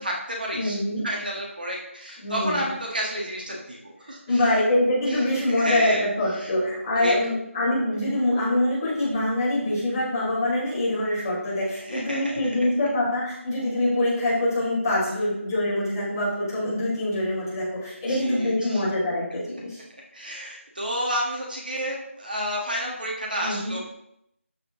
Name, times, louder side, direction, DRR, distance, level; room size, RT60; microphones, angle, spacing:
voice 1, 0.0-0.8 1.0-4.5 5.1-5.2 5.4-6.1 6.4-6.5 6.9-7.1 11.8-12.5 18.1-18.8 20.1-23.8, equal, 40° right, -2 dB, 1.6 m, -31 dB
voice 2, 0.6-1.1 2.2-2.7 4.0-19.8 23.4-23.8, left 1 dB, 15° left, -11 dB, 2.6 m, -25 dB
13.0 x 4.5 x 3.7 m, 0.77 s
figure-of-eight pair, 180°, 7 cm